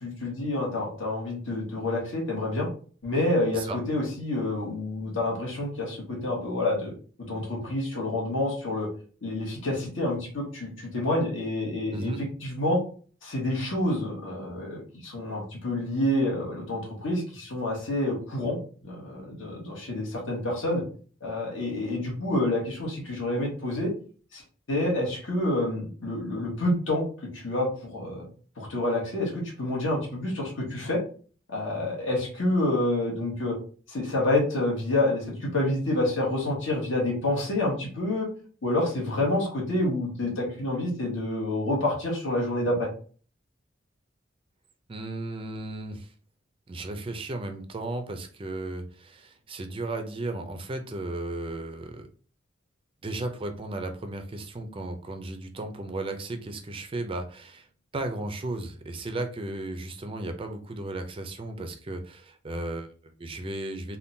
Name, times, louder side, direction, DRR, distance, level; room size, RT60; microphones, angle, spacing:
voice 1, 0.0-2.7 3.0-6.9 7.3-8.9 9.2-12.1 12.4-12.8 13.2-20.8 21.2-23.9 24.3-24.4 24.7-27.0 27.3-28.3 28.6-31.0 31.5-33.6 33.9-38.3 38.6-42.9, left 1 dB, 65° left, -2 dB, 1.3 m, -28 dB
voice 2, 44.9-46.1 46.7-52.1 53.0-57.7 57.9-64.0, right 2 dB, 25° right, 7 dB, 0.4 m, -35 dB
3.6 x 2.2 x 2.6 m, 0.41 s
head